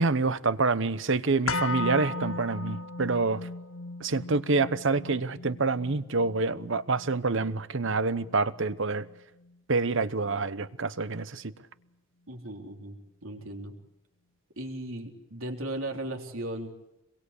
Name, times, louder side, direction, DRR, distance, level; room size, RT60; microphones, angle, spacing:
voice 1, 0.0-3.5 4.0-9.1 9.7-11.5, right 3 dB, 65° right, 1.0 m, -27 dB
sound 1, 1.5-9.5 9.9-10.0, left 3 dB, 75° left, 1.0 m, -37 dB
voice 2, 12.3-13.7 14.6-16.7, right 1 dB, 80° right, 3.7 m, -37 dB
27.0 x 22.5 x 8.4 m
head